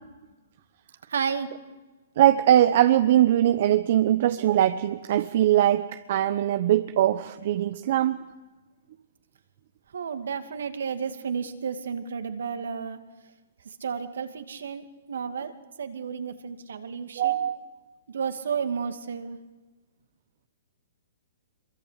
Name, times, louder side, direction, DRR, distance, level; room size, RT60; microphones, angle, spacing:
voice 1, 1.1-1.5 9.9-13.0 13.8-15.5 15.8-17.4 18.1-19.4, right 6 dB, 70° right, 2.4 m, -32 dB
voice 2, 2.2-8.2 17.2-17.8, right 12 dB, 55° right, 1.0 m, -21 dB
26.5 x 23.0 x 8.3 m
hypercardioid pair, 125°, 0 cm